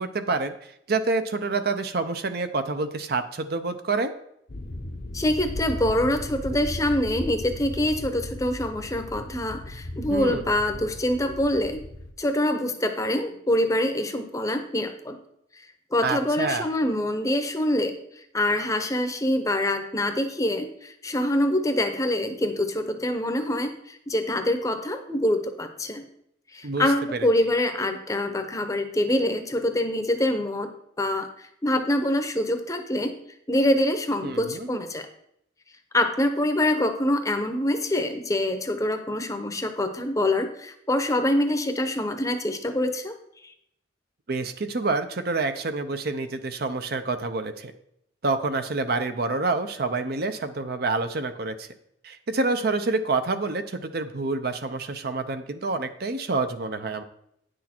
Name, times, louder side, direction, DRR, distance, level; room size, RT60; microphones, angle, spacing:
voice 1, 0.0-4.1 10.1-10.4 16.0-16.7 26.6-26.9 27.1-27.3 34.2-34.7 44.3-47.7 48.2-51.7 52.0-57.0, right 3 dB, 55° right, 9 dB, 0.6 m, -27 dB
sound 1, 4.5-12.1, left 1 dB, 55° left, 0.8 m, -36 dB
voice 2, 5.1-11.8 12.2-15.2 15.9-26.0 26.5-30.7 31.0-33.1 33.5-35.0 35.9-43.2 43.4-43.5, left 1 dB, 15° left, 6 dB, 0.7 m, -25 dB
9.4 x 6.3 x 4.4 m, 0.75 s
head